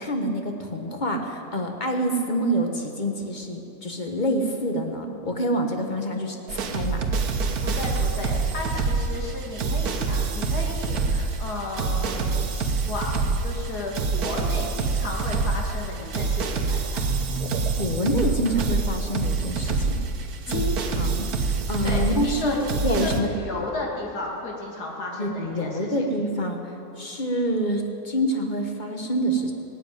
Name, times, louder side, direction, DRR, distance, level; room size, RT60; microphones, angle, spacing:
voice 1, 0.0-7.0 17.8-19.9 20.5-23.3 25.2-26.6 27.0-29.5, equal, 30° left, 3 dB, 1.4 m, -27 dB
sound 1, 6.5-23.2, right 4 dB, 70° right, 1.6 m, -26 dB
voice 2, 7.6-17.1 20.5-20.7 21.8-26.0, left 2 dB, 75° left, -1 dB, 2.6 m, -34 dB
18.0 x 8.8 x 9.1 m, 2.8 s
omnidirectional pair, 1.7 m